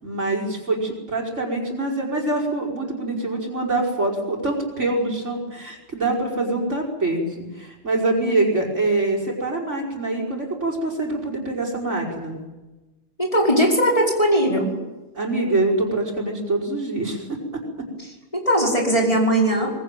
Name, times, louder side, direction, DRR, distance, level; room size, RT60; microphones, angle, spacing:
voice 1, 0.0-12.4 15.1-17.2, right 2 dB, 65° right, 2 dB, 5.8 m, -24 dB
voice 2, 13.2-14.7 18.3-19.7, equal, 25° left, -1 dB, 5.4 m, -19 dB
24.0 x 20.5 x 9.2 m, 1.1 s
omnidirectional pair, 1.4 m